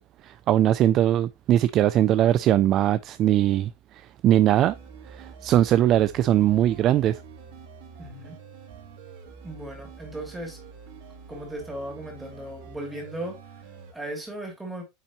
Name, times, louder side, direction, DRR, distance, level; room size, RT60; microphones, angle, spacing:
voice 1, 0.2-4.8 5.1-7.2, right 12 dB, 30° right, 0.3 m, -21 dB
sound 1, 4.6-13.9, right 5 dB, 60° right, 3.9 m, -46 dB
voice 2, 8.0-8.4 9.4-10.6 11.3-14.8, right 1 dB, 5° right, 2.9 m, -37 dB
8.8 x 5.8 x 3.0 m
supercardioid pair, 170°, 0 cm